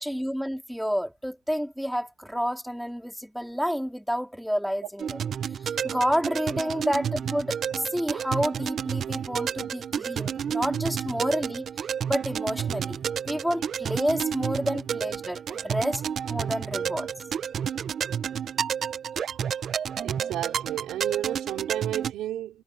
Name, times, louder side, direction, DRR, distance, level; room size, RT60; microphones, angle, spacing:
voice 1, 0.0-5.0 5.8-11.7 12.1-13.0 13.3-16.0 16.3-17.1, equal, ahead, 3.0 m, -29 dB
sound 1, 5.0-22.1, right 8 dB, 65° right, 0.8 m, -31 dB
voice 2, 20.0-22.6, right 13 dB, 85° right, 3.8 m, -32 dB
cardioid pair, 70°, 0 cm